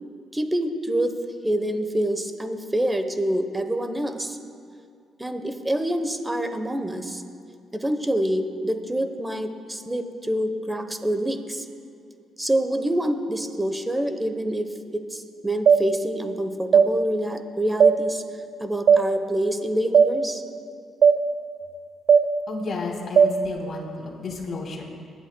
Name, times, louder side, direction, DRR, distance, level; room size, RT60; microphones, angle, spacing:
voice 1, 0.3-1.2 1.4-4.4 5.2-7.2 7.7-11.7 12.4-18.2 18.6-20.4, right 1 dB, 10° right, 7 dB, 1.0 m, -26 dB
sound 1, 15.7-15.8 16.7-16.9 17.8-18.0 18.9-19.0 19.9-20.1 21.0-21.2 22.1-22.2 23.2-23.3, right 7 dB, 60° right, 0.6 m, -14 dB
voice 2, 22.5-24.8, left 3 dB, 50° left, -1 dB, 2.7 m, -32 dB
25.0 x 11.0 x 2.3 m, 2.4 s
cardioid pair, 90°, 0 cm